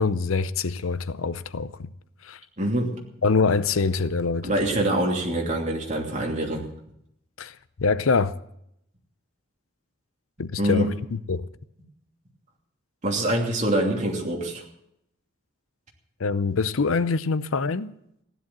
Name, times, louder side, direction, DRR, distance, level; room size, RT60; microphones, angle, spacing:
voice 1, 0.0-1.9 2.2-2.4 3.2-4.7 7.4-8.4 10.4-10.9 11.3-11.5 16.2-17.9, left 4 dB, 70° left, 0.6 m, -24 dB
voice 2, 2.6-3.0 4.4-6.7 10.6-10.9 13.0-14.6, right 1 dB, 35° right, 2.9 m, -25 dB
15.5 x 11.0 x 7.5 m
head